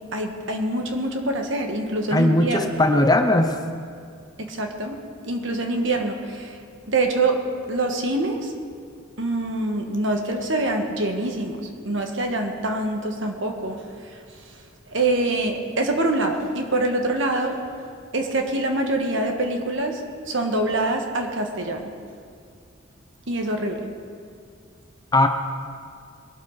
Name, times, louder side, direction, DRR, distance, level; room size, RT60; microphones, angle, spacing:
voice 1, 0.1-2.7 4.4-5.0 5.2-6.5 6.9-7.4 7.7-8.5 9.2-11.6 11.8-13.8 14.9-17.6 18.1-21.9 23.3-23.9, right 2 dB, 60° right, 3 dB, 1.5 m, -25 dB
voice 2, 2.1-3.6 25.1-25.3, left 1 dB, 20° left, 6 dB, 0.7 m, -18 dB
21.0 x 12.0 x 4.1 m, 2.3 s
head